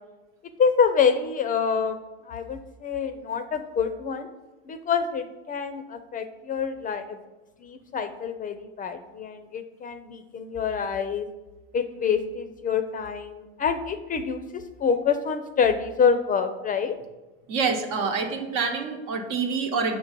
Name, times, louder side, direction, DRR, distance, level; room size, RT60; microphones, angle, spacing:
voice 1, 0.6-2.0 2.3-4.3 4.7-7.2 7.6-11.3 11.7-17.0, left 6 dB, 25° left, 10 dB, 0.4 m, -26 dB
voice 2, 17.5-20.0, right 5 dB, 70° right, 3 dB, 1.0 m, -26 dB
6.4 x 3.0 x 5.1 m, 1.1 s
hypercardioid pair, 85°, 31 cm